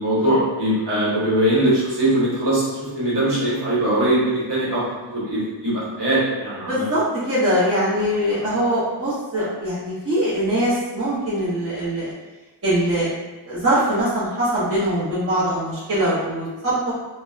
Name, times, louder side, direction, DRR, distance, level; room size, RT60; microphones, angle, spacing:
voice 1, 0.0-6.8, right 1 dB, 55° right, -9 dB, 1.1 m, -21 dB
voice 2, 6.6-12.1 12.6-13.1 13.5-16.9, right 1 dB, 30° right, -9 dB, 0.7 m, -22 dB
2.6 x 2.1 x 2.3 m, 1.2 s
wide cardioid pair, 90°, 48 cm